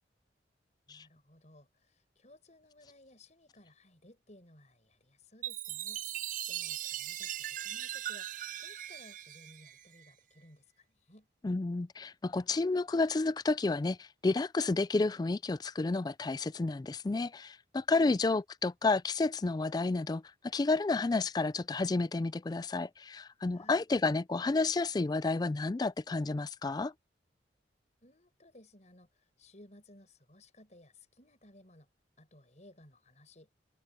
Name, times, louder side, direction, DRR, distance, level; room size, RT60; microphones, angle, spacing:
voice 1, 0.9-11.3 23.5-23.8 28.0-31.9 32.2-33.5, left 1 dB, 40° left, 6.1 m, -59 dB
Chime, 5.4-10.1, right 12 dB, 45° right, 0.5 m, -39 dB
voice 2, 11.4-20.2 20.5-26.9, left 3 dB, 20° left, 0.3 m, -31 dB
head